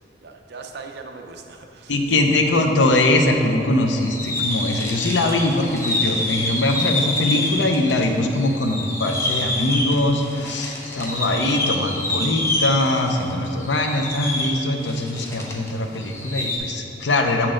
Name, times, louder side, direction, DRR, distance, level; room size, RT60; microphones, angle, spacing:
voice 1, 0.0-2.5, right 4 dB, 60° right, 4 dB, 0.6 m, -40 dB
voice 2, 1.9-17.5, left 2 dB, 70° left, 4 dB, 0.6 m, -21 dB
sound 1, 3.9-8.1 8.3-15.7 15.9-16.6, left 1 dB, 15° left, 0.8 m, -27 dB
7.6 x 5.9 x 3.8 m, 2.9 s
head